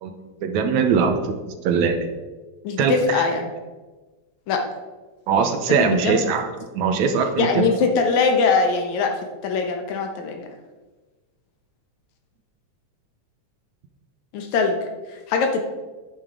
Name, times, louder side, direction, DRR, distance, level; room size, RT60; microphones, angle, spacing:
voice 1, 0.4-2.0 2.8-3.3 5.3-6.5 6.7-7.7, right 6 dB, 75° right, 6 dB, 2.2 m, -21 dB
voice 2, 2.6-3.5 4.5-4.6 5.7-6.3 7.4-9.1 9.4-10.5 14.3-14.8 15.1-15.6, left 4 dB, 70° left, 4 dB, 2.3 m, -22 dB
10.5 x 8.9 x 3.8 m, 1.2 s
omnidirectional pair, 3.5 m